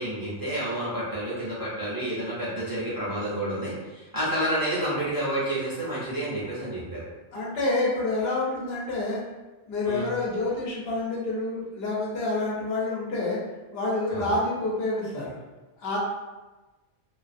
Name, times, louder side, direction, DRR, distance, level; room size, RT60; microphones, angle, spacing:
voice 1, 0.0-7.1 9.8-10.1 14.1-14.2, right 1 dB, 25° right, -10 dB, 0.6 m, -29 dB
voice 2, 7.3-9.2 9.7-13.4 13.7-15.3 15.8-16.0, left 2 dB, 70° left, -5 dB, 0.9 m, -28 dB
2.4 x 2.3 x 2.5 m, 1.2 s
omnidirectional pair, 1.1 m